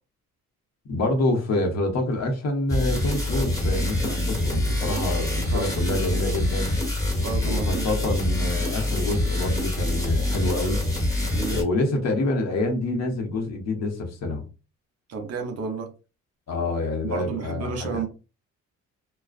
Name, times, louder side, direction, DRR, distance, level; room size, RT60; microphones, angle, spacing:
voice 1, 0.9-6.8 7.4-10.8 11.5-14.4 16.5-18.0, left 2 dB, 60° left, 0.9 m, -27 dB
sound 1, 2.7-11.6, left 1 dB, 10° left, 1.3 m, -25 dB
voice 2, 4.9-6.0 7.2-7.9 11.3-11.6 15.1-15.9 17.0-18.1, right 5 dB, 55° right, 0.8 m, -32 dB
2.4 x 2.1 x 2.4 m
cardioid pair, 90°, 30 cm